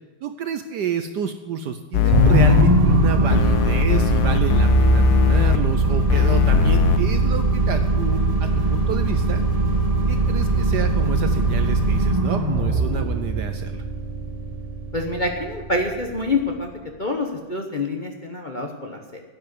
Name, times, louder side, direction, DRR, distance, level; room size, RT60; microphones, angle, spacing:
voice 1, 0.2-9.4 10.1-13.8, right 7 dB, 65° right, 8 dB, 1.1 m, -29 dB
sound 1, 1.9-2.6 3.3-5.6 6.1-7.0, left 8 dB, 65° left, 1.0 m, -19 dB
sound 2, 2.1-16.6, right 2 dB, 25° right, 1.0 m, -21 dB
voice 2, 14.9-16.7 17.0-19.2, left 2 dB, 30° left, 2 dB, 0.9 m, -26 dB
10.5 x 8.7 x 9.4 m, 1.3 s
omnidirectional pair, 2.3 m